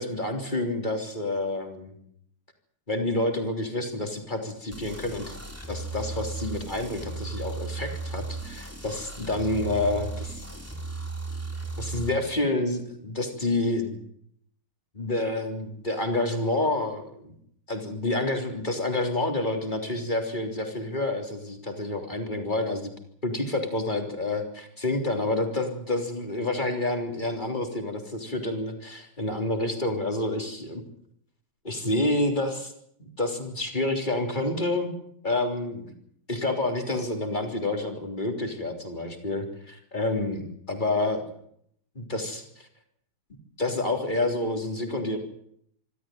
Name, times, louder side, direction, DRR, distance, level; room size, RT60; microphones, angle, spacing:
voice 1, 0.0-1.9 2.9-5.4 5.7-10.4 11.8-14.0 15.0-17.3 17.7-22.9 23.2-30.8 31.6-32.7 33.0-34.9 35.2-35.9 36.3-41.3 42.0-42.7 43.6-45.2, left 2 dB, 20° left, 4 dB, 3.5 m, -28 dB
sound 1, 4.7-12.1, right 3 dB, 5° right, 3.9 m, -36 dB
25.5 x 13.0 x 9.2 m, 0.69 s
omnidirectional pair, 2.2 m